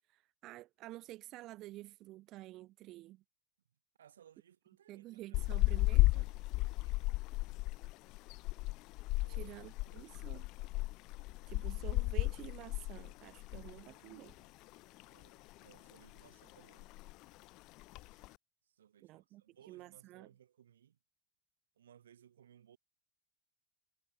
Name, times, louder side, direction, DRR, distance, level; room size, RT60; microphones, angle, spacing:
voice 1, 0.1-3.2 4.9-6.3 9.4-10.5 11.5-14.4 19.0-19.4 19.7-20.3, right 17 dB, 50° right, 3.8 m, -50 dB
voice 2, 4.0-5.4 6.1-6.5 6.7-7.2 9.2-9.5 9.9-10.4 15.1-16.9 18.6-21.0 21.8-22.8, right 9 dB, 85° right, 6.5 m, -63 dB
sound 1, 5.3-13.9 14.1-14.3 14.7-15.6 15.9-16.3 16.5-16.6 16.8-17.2 17.8-18.3, left 21 dB, 50° left, 0.7 m, -34 dB
hypercardioid pair, 95°, 0 cm